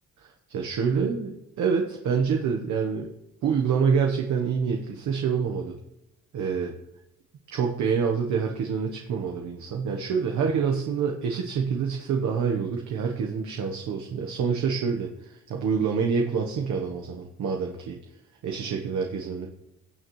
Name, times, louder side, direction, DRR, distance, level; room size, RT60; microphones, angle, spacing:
voice 1, 0.2-3.1 3.4-5.8 6.3-6.7 7.5-18.0 18.4-19.5, right 6 dB, 70° right, 2 dB, 1.1 m, -27 dB
18.0 x 6.6 x 3.1 m, 0.89 s
cardioid pair, 90°, 30 cm